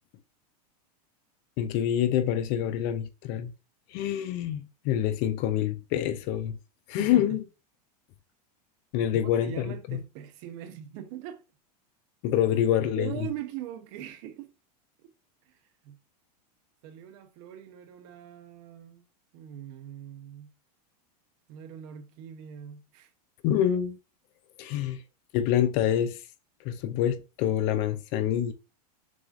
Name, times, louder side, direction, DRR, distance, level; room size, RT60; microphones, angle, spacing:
voice 1, 1.6-3.5 3.9-6.6 6.9-7.4 8.9-10.0 12.2-13.1 23.4-24.0 24.6-25.0 25.3-26.2 26.6-28.5, left 10 dB, 45° left, 0.5 m, -26 dB
voice 2, 7.0-7.4 9.1-11.4 12.8-14.5 15.0-15.1 15.4-15.6 15.8-16.0 16.8-19.1 19.3-20.5 21.5-23.1, right 10 dB, 50° right, 0.7 m, -41 dB
6.1 x 2.5 x 2.3 m
supercardioid pair, 130°, 21 cm